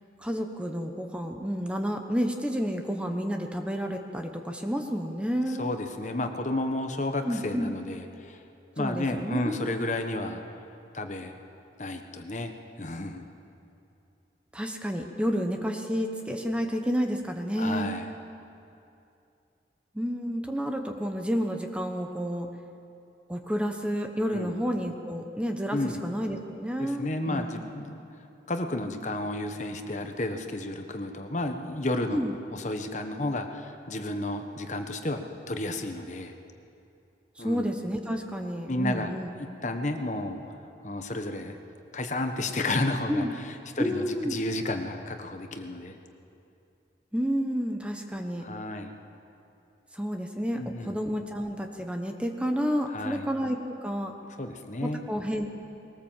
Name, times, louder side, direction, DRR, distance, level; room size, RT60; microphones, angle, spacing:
voice 1, 0.2-5.7 7.2-7.7 8.8-9.6 14.5-17.9 19.9-22.5 23.3-27.6 32.1-32.4 37.4-39.3 43.1-43.3 43.8-44.4 47.1-48.4 49.9-54.1 54.8-55.5, equal, 5° right, 4 dB, 1.0 m, -30 dB
voice 2, 5.6-8.4 8.8-10.4 10.9-11.3 11.8-12.5 12.8-13.3 17.6-18.0 24.3-24.5 25.7-26.0 26.8-28.0 28.5-32.2 32.5-36.3 37.4-37.6 38.7-39.1 39.6-40.6 40.8-41.6 41.9-46.0 48.4-49.0 50.5-50.9 52.9-53.3 54.4-55.0, left 2 dB, 40° left, 6 dB, 1.1 m, -32 dB
20.5 x 18.5 x 7.4 m, 2.7 s
head